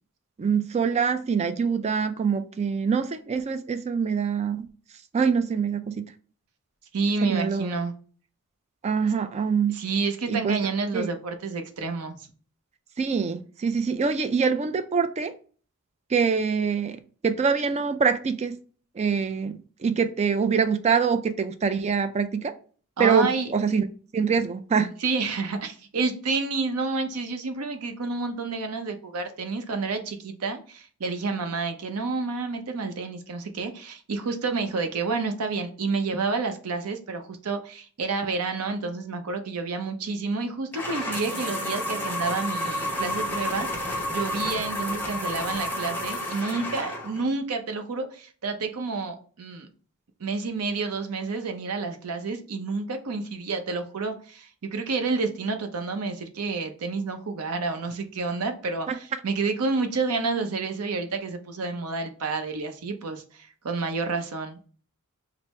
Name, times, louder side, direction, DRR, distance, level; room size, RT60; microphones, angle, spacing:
voice 1, 0.4-4.7 5.1-6.0 7.3-7.8 8.8-9.8 10.3-10.6 10.9-11.1 13.0-15.3 16.1-18.6 19.0-22.5 23.0-23.9 24.1-24.9 58.9-59.0, right 6 dB, 30° right, 0.3 m, -24 dB
voice 2, 6.9-7.9 9.7-12.2 23.0-23.5 25.0-49.7 50.2-64.7, right 4 dB, 80° right, 0.6 m, -29 dB
sound 1, 40.7-47.3, left 1 dB, 10° left, 0.7 m, -30 dB
4.4 x 2.0 x 3.1 m
head